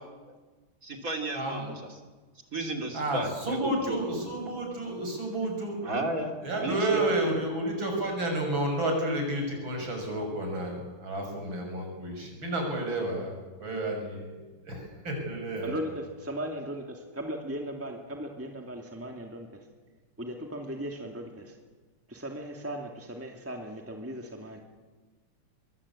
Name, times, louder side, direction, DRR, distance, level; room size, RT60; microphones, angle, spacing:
voice 1, 0.8-1.7 2.5-4.2 5.8-6.3 6.6-7.1, right 1 dB, 40° right, 4 dB, 3.3 m, -33 dB
voice 2, 1.3-1.7 2.9-5.8 6.4-13.3 13.6-14.4 14.7-15.7, right 1 dB, 65° right, 2 dB, 7.3 m, -31 dB
voice 3, 16.2-19.5 20.2-21.5 22.1-24.6, right 1 dB, 5° right, 2 dB, 2.3 m, -37 dB
24.0 x 22.5 x 8.6 m, 1.3 s
omnidirectional pair, 2.3 m